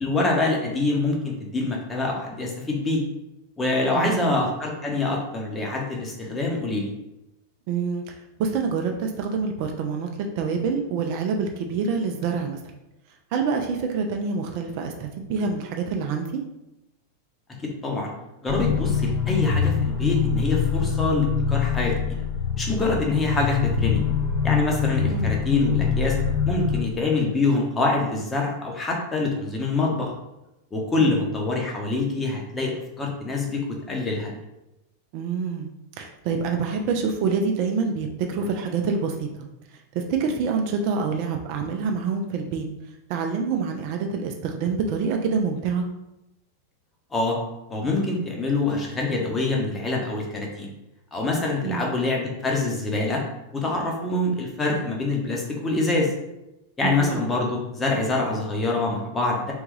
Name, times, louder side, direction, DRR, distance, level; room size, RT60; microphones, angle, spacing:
voice 1, 0.0-3.0 3.6-6.9 17.6-18.1 18.4-22.2 22.6-24.0 24.4-26.2 26.5-30.1 30.7-34.3 47.1-47.4 47.7-50.7 51.1-53.2 53.5-56.1 56.8-59.5, left 2 dB, 15° left, -1 dB, 1.0 m, -25 dB
voice 2, 3.9-4.3 7.7-10.1 10.4-12.6 13.3-16.4 25.0-25.3 31.0-31.4 35.1-35.7 36.0-39.5 39.9-42.6 43.1-45.8 51.6-51.9 56.8-57.2, right 5 dB, 45° right, 3 dB, 0.5 m, -26 dB
sound 1, 18.5-26.8, left 6 dB, 45° left, 0.7 m, -24 dB
3.5 x 3.5 x 3.2 m, 0.91 s
figure-of-eight pair, 90°, 0 cm